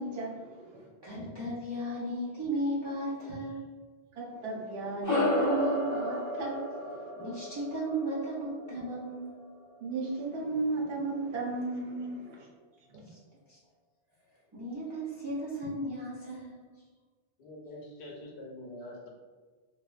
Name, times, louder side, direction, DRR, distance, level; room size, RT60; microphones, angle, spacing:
voice 1, 0.0-0.8 4.1-7.1 9.8-12.5 12.9-13.1, right 3 dB, 70° right, -2 dB, 0.8 m, -35 dB
voice 2, 1.0-3.6 7.2-9.4 13.1-13.2 13.5-13.6 14.5-16.6, right 1 dB, 40° right, -8 dB, 0.4 m, -35 dB
sound 1, 5.0-9.8, left 1 dB, 20° left, 0.6 m, -32 dB
voice 3, 17.4-19.1, left 1 dB, 80° left, -1 dB, 0.9 m, -45 dB
3.0 x 2.1 x 2.3 m, 1.4 s
omnidirectional pair, 1.1 m